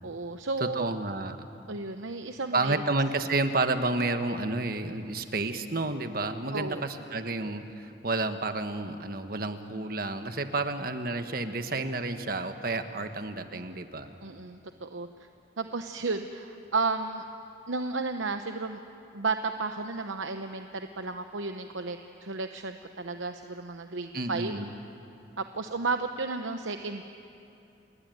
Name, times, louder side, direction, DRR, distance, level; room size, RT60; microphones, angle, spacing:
voice 1, 0.0-0.9 1.7-2.8 6.5-6.8 14.2-15.1 15.6-17.2 17.7-18.8 19.1-24.6 25.4-27.0, right 3 dB, 90° right, 7 dB, 0.9 m, -33 dB
voice 2, 0.6-1.5 2.5-14.2 24.1-24.7, right 2 dB, 50° right, 8 dB, 1.3 m, -30 dB
29.5 x 20.5 x 9.4 m, 2.7 s
head